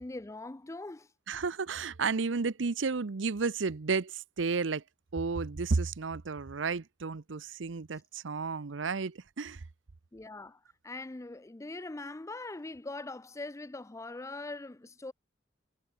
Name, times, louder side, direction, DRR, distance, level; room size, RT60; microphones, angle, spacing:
voice 1, 0.0-1.1 10.1-15.1, left 2 dB, 15° left, 0.5 m, -42 dB
voice 2, 1.3-4.8 5.1-9.6, right 4 dB, 85° right, 0.7 m, -32 dB
head